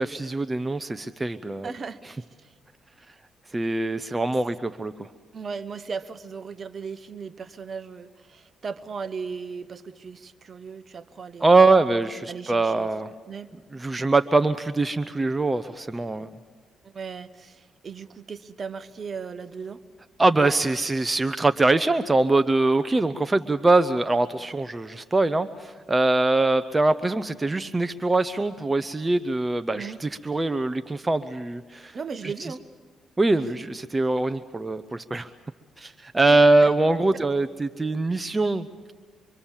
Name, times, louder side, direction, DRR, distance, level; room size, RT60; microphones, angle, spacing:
voice 1, 0.0-1.7 3.5-5.1 11.4-13.1 13.7-16.3 20.2-31.9 32.4-32.5 33.2-35.3 35.8-38.9, right 2 dB, 20° right, 10 dB, 0.7 m, -23 dB
voice 2, 1.6-2.5 5.3-11.6 12.3-12.9 13.3-13.5 16.9-19.8 20.3-20.6 29.7-30.0 31.9-32.6 36.6-36.7, right 5 dB, 45° right, 13 dB, 1.0 m, -37 dB
25.0 x 24.5 x 7.3 m, 1.5 s
cardioid pair, 90°, 0 cm